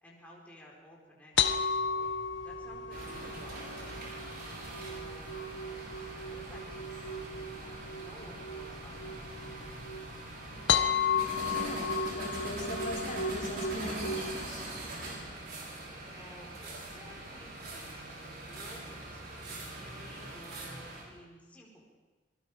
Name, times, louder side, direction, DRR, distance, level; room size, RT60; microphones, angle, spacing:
voice 1, 0.0-2.1 2.4-4.2 4.8-5.4 5.6-7.0 7.5-9.1 16.1-21.8, equal, 10° left, -4 dB, 4.5 m, -55 dB
sound 1, 1.4-14.5, left 5 dB, 80° left, 1.3 m, -34 dB
sound 2, 2.9-21.0, right 2 dB, 55° right, 6.8 m, -42 dB
voice 2, 10.5-14.8, equal, 45° left, -3 dB, 5.3 m, -42 dB
sound 3, 12.6-18.0, right 1 dB, 20° right, 4.1 m, -55 dB
28.0 x 20.0 x 5.0 m, 1.3 s
head